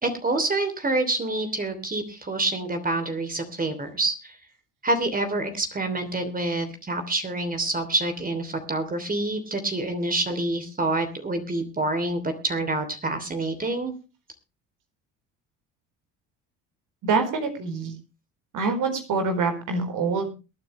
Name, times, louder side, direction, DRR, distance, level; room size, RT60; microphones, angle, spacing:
voice 1, 0.0-4.4 4.8-13.9, right 2 dB, 25° right, 7 dB, 3.1 m, -27 dB
voice 2, 17.0-17.9 18.5-20.3, right 4 dB, 60° right, 6 dB, 4.4 m, -25 dB
22.5 x 9.6 x 3.2 m, 0.30 s
hypercardioid pair, 65°, 35 cm